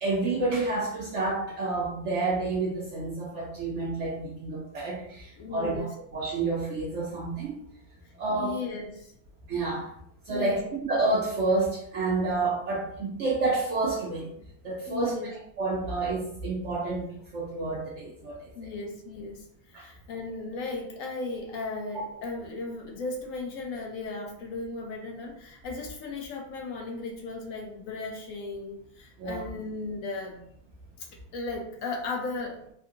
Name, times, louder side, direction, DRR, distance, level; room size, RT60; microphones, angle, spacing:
voice 1, 0.0-7.5 8.2-8.5 9.5-9.9 10.3-10.6 10.9-14.3 14.6-15.3 15.6-17.1 17.3-18.4 19.7-19.9 29.2-29.5, right 3 dB, 60° right, -5 dB, 0.9 m, -29 dB
voice 2, 5.4-5.9 8.3-9.1 10.3-10.6 14.9-15.3 18.6-19.4 19.7-30.4 31.0-31.1 31.3-32.6, left 3 dB, 70° left, 1 dB, 0.9 m, -36 dB
3.4 x 2.7 x 2.5 m, 0.70 s
omnidirectional pair, 1.6 m